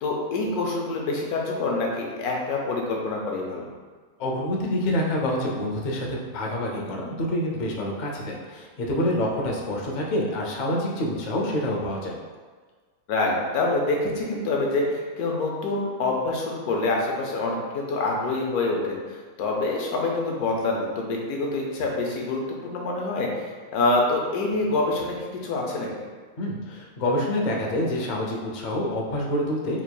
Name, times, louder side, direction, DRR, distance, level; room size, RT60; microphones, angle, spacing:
voice 1, 0.0-3.7 13.1-25.9, left 2 dB, 90° left, -1 dB, 1.2 m, -26 dB
voice 2, 4.2-12.2 26.4-29.8, left 1 dB, 55° left, -1 dB, 0.5 m, -27 dB
4.6 x 3.5 x 2.2 m, 1.5 s
omnidirectional pair, 1.5 m